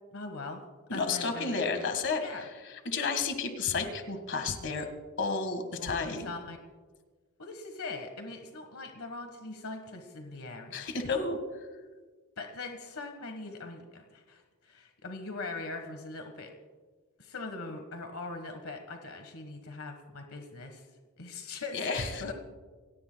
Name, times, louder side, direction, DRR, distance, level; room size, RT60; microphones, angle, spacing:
voice 1, 0.1-0.6 0.9-1.6 2.2-2.4 5.8-6.7 7.4-10.9 12.4-16.5 17.2-20.9 21.2-21.9 22.2-22.3, left 3 dB, 70° left, 5 dB, 1.4 m, -41 dB
voice 2, 0.9-4.9 5.2-6.3 10.7-11.4 21.7-22.2, left 4 dB, 55° left, 7 dB, 1.7 m, -32 dB
27.0 x 17.5 x 2.3 m, 1.4 s
head